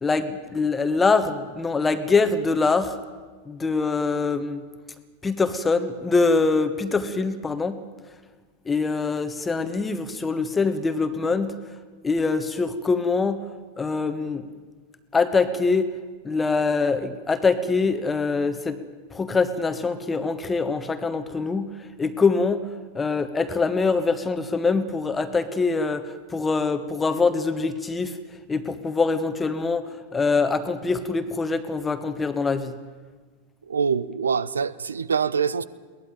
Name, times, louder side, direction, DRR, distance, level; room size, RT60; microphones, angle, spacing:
voice 1, 0.0-3.0 3.5-4.6 5.2-7.8 8.7-11.5 12.0-13.4 13.8-14.4 15.1-15.9 16.2-18.8 19.1-21.7 22.0-22.6 22.9-28.1 28.5-29.8 30.1-32.7, left 4 dB, 15° left, 1.3 m, -24 dB
voice 2, 33.7-35.6, right 6 dB, 70° right, 0.8 m, -24 dB
22.0 x 18.0 x 9.3 m
figure-of-eight pair, 90°, 0 cm